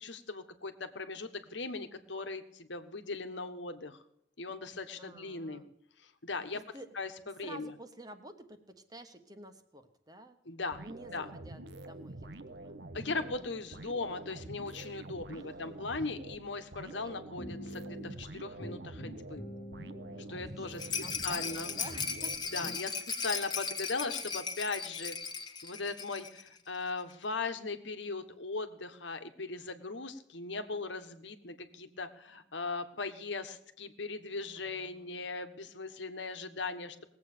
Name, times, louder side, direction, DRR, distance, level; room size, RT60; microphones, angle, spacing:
voice 1, 0.0-4.0 4.4-5.6 6.0-6.6 6.9-7.7 10.4-10.9 11.1-11.3 12.9-19.4 20.3-21.7 22.5-25.1 25.6-37.0, left 3 dB, 75° left, 8 dB, 1.4 m, -39 dB
voice 2, 5.0-5.7 6.5-6.9 7.4-10.4 10.8-13.9 15.3-15.8 17.0-17.2 20.2-21.5 21.8-23.0 34.5-35.3, right 1 dB, 20° right, 7 dB, 1.3 m, -51 dB
sound 1, 10.7-22.9, right 2 dB, 60° right, 1.0 m, -47 dB
sound 2, 17.4-18.3 18.6-22.2 22.6-22.9, equal, 45° left, 1.5 m, -46 dB
Rattle, 20.8-26.5 26.7-26.8 27.1-27.2, left 5 dB, 20° left, 1.3 m, -37 dB
19.5 x 8.1 x 6.8 m, 0.75 s
head